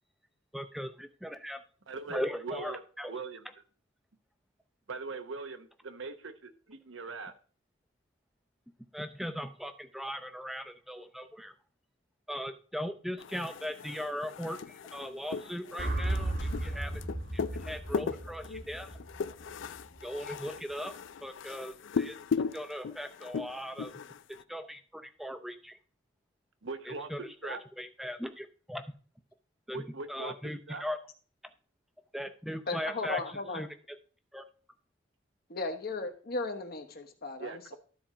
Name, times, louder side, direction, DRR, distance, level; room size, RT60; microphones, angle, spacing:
voice 1, 0.5-1.6 2.1-3.1 8.9-11.5 12.3-17.0 17.3-18.9 20.0-20.9 21.2-22.2 22.5-23.9 24.5-25.8 26.9-28.8 29.7-29.8 30.1-31.0 32.1-33.2 33.5-33.7 34.3-34.4, equal, ahead, 8 dB, 0.6 m, -39 dB
voice 2, 1.9-2.8 3.1-3.4 4.9-7.3 26.6-27.6 29.7-30.8 37.4-37.8, right 3 dB, 70° right, 9 dB, 0.9 m, -41 dB
sound 1, 13.2-24.4, left 5 dB, 65° left, 0.4 m, -38 dB
sound 2, 15.8-20.0, right 1 dB, 50° right, 1.5 m, -35 dB
voice 3, 32.7-33.6 35.5-37.8, left 3 dB, 50° left, 5 dB, 1.1 m, -36 dB
13.0 x 4.3 x 5.0 m, 0.40 s
head